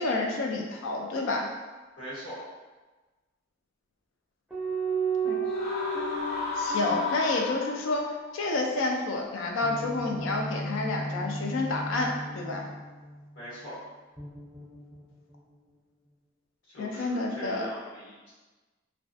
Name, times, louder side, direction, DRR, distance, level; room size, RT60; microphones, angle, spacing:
voice 1, 0.0-1.5 5.2-5.4 6.6-12.7 16.8-17.7, left 2 dB, 85° left, 1 dB, 0.4 m, -29 dB
voice 2, 2.0-2.4 13.3-13.8 16.7-18.3, equal, 70° left, -9 dB, 1.1 m, -41 dB
sound 1, 4.5-8.2 9.6-13.4 14.2-15.4, right 3 dB, 5° right, 0.4 m, -34 dB
sound 2, 5.5-8.1, left 4 dB, 40° left, 0.7 m, -33 dB
2.3 x 2.3 x 2.5 m, 1.2 s
head